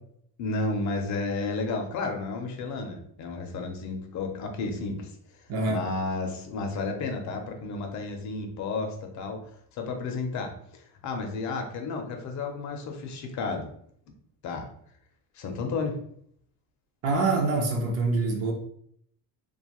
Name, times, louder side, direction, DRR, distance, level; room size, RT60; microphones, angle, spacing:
voice 1, 0.4-5.1 5.7-13.7 14.4-14.7 15.3-16.0, left 3 dB, 50° left, 4 dB, 0.5 m, -32 dB
voice 2, 5.5-5.8 17.0-18.5, right 3 dB, 40° right, 2 dB, 0.5 m, -25 dB
2.5 x 2.3 x 2.9 m, 0.66 s
cardioid pair, 165°, 37 cm